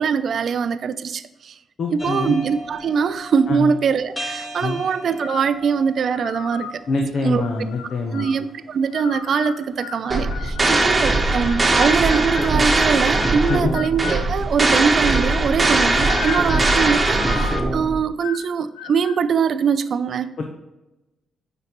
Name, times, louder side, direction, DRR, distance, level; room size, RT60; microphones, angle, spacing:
voice 1, 0.0-1.6 1.9-7.7 8.1-20.4, right 6 dB, 60° right, 13 dB, 0.4 m, -22 dB
voice 2, 1.8-2.4 3.5-3.7 4.6-4.8 6.9-8.3 13.5-13.7 20.4-20.5, left 4 dB, 60° left, 3 dB, 0.7 m, -24 dB
sound 1, 2.0-14.1, right 1 dB, 20° left, 1.3 m, -40 dB
sound 2, 5.2-5.6 6.1-6.8 7.4-8.4 8.9-10.9 11.4-14.2 14.7-15.3 15.8-17.7 18.2-18.5 18.7-19.2, left 9 dB, 90° left, 0.4 m, -34 dB
sound 3, 10.1-18.0, right 2 dB, 30° right, 1.0 m, -20 dB
9.2 x 3.8 x 3.0 m, 0.96 s
supercardioid pair, 50°, 0 cm